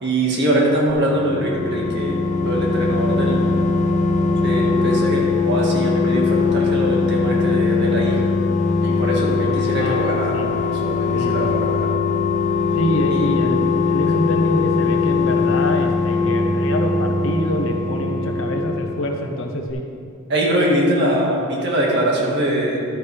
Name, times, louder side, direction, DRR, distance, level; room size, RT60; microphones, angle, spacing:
voice 1, 0.0-3.5 4.4-8.3 8.8-11.9 13.1-13.3 20.3-22.9, right 1 dB, 50° right, -3 dB, 1.9 m, -22 dB
sound 1, 1.1-19.4 19.7-19.8, left 4 dB, 35° left, 0.5 m, -20 dB
voice 2, 9.8-10.6 11.1-11.4 12.7-19.8, left 1 dB, 60° left, 3 dB, 1.0 m, -25 dB
11.5 x 9.4 x 3.5 m, 2.5 s
head